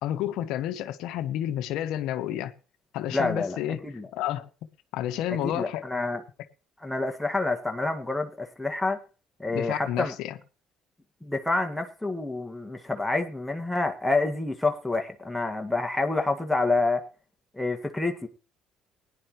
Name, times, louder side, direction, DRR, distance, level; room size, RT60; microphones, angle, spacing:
voice 1, 0.0-2.5 2.9-3.8 4.1-4.5 4.9-5.9 9.5-10.4, left 12 dB, 75° left, 0.9 m, -30 dB
voice 2, 3.1-3.6 3.8-4.1 5.4-6.2 6.8-9.0 9.4-10.1 11.2-17.0 17.5-18.3, left 3 dB, 5° left, 1.8 m, -28 dB
18.0 x 10.0 x 3.1 m
supercardioid pair, 75°, 0 cm